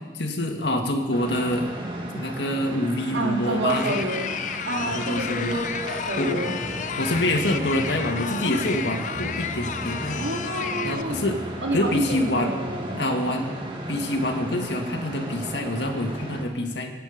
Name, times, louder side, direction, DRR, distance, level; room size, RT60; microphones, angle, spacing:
voice 1, 0.2-1.7 2.1-4.1 4.8-5.6 6.2-6.5 7.0-10.3 10.8-11.4 11.7-12.6 13.0-13.6 13.9-16.9, left 1 dB, 80° left, 3 dB, 1.9 m, -26 dB
sound 1, 1.1-16.4, right 1 dB, 30° right, 2.0 m, -35 dB
voice 2, 3.1-4.3 4.7-6.5 10.2-11.2 11.6-13.0, right 1 dB, 85° right, 2 dB, 2.2 m, -29 dB
sound 2, 3.7-11.0, left 7 dB, 45° left, 0.6 m, -32 dB
sound 3, 5.1-13.0, left 1 dB, ahead, 0.8 m, -42 dB
24.5 x 9.0 x 5.1 m, 1.5 s
head